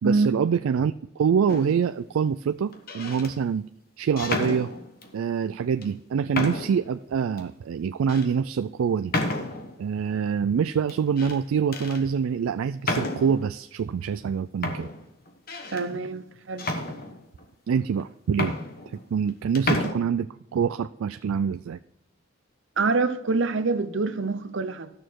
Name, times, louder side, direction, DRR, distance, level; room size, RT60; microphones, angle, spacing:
voice 1, 0.0-3.7 4.0-4.7 5.1-9.1 9.8-14.9 17.7-18.5 19.1-21.8, right 6 dB, 80° right, 0.3 m, -25 dB
sound 1, 1.5-1.9 2.7-3.3 4.2-5.1 5.8-5.9 6.3-6.9 7.4-7.5 8.1-8.3 9.1-9.8 10.9-11.4 11.7-12.0 12.8-13.5 14.2-14.3 14.6-15.9 16.6-17.4 18.0-18.1 18.3-19.3 19.5-19.9, left 2 dB, 45° left, 1.2 m, -30 dB
voice 2, 15.7-16.7 22.8-24.9, right 3 dB, 60° right, 0.7 m, -25 dB
12.5 x 6.5 x 4.6 m
head